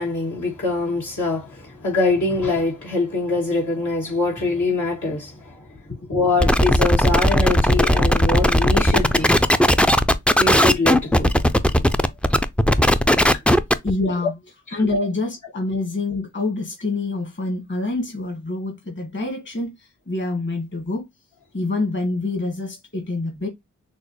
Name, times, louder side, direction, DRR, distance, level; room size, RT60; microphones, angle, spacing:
voice 1, 0.0-5.8 6.1-9.4 10.4-11.3 11.8-11.9 13.3-13.4 14.7-14.8, left 2 dB, 70° left, 2.2 m, -23 dB
sound 1, 6.4-13.9, equal, 5° left, 0.4 m, -17 dB
voice 2, 13.8-14.3 14.7-21.0 21.5-23.5, left 2 dB, 35° left, 1.7 m, -26 dB
6.2 x 2.1 x 3.1 m
cardioid pair, 55°, 31 cm